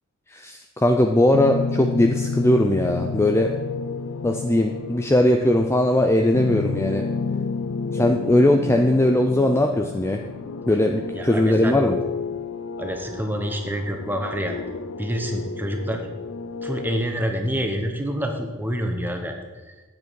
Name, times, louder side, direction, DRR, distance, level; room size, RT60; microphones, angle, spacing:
voice 1, 0.3-3.5 4.2-7.0 7.9-10.2 10.7-12.0, left 1 dB, 10° left, 3 dB, 0.4 m, -19 dB
sound 1, 1.3-17.0, left 4 dB, 70° left, 0.5 m, -31 dB
voice 2, 11.1-11.8 12.8-14.5 15.0-16.0 16.6-19.4, equal, 10° right, 4 dB, 1.0 m, -27 dB
9.4 x 7.7 x 4.7 m, 1.2 s
head